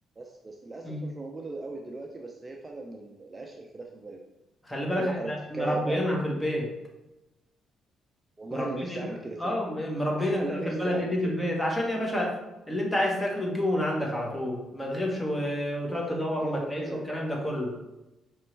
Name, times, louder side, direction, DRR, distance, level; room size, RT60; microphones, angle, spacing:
voice 1, 0.2-4.2 4.9-6.0 6.4-6.7 8.4-9.6 10.2-11.3 15.8-17.0, right 2 dB, 25° right, 2 dB, 0.5 m, -38 dB
voice 2, 4.6-6.7 8.5-9.1 9.4-12.3 12.7-17.8, left 1 dB, 15° left, -1 dB, 1.2 m, -29 dB
5.2 x 3.0 x 3.3 m, 0.99 s
cardioid pair, 90°, 0 cm